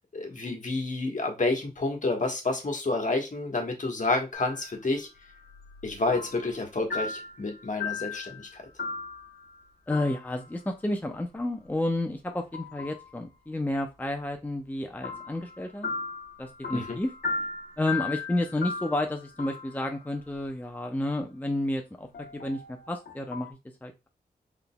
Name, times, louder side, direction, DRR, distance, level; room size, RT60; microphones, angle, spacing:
voice 1, 0.1-5.1 5.8-8.6 16.7-17.0, left 2 dB, 50° left, 2 dB, 1.3 m, -29 dB
sound 1, 4.3-4.8 5.2-6.6 6.9-9.6 9.9-10.4 12.3-13.1 15.0-20.3 22.1-23.5, left 4 dB, 80° left, 0.8 m, -37 dB
voice 2, 9.9-15.9 16.4-17.1 17.8-24.1, left 1 dB, 10° left, 4 dB, 0.6 m, -31 dB
3.9 x 3.5 x 2.2 m, 0.25 s
cardioid pair, 45°, 17 cm